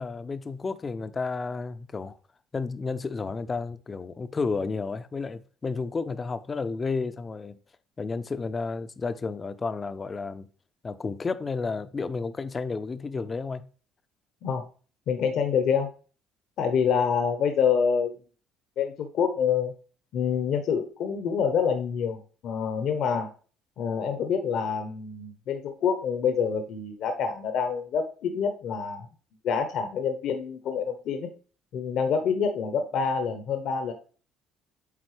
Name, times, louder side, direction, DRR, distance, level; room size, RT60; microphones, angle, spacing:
voice 1, 0.0-2.2 2.5-7.6 8.0-10.5 10.8-13.7, left 4 dB, 30° left, 0.5 m, -32 dB
voice 2, 15.1-15.9 16.6-18.1 18.8-19.7 20.1-23.3 23.8-29.1 29.4-31.3 31.7-33.9, left 6 dB, 65° left, 0.8 m, -26 dB
8.4 x 3.7 x 3.2 m
cardioid pair, 105°, 0 cm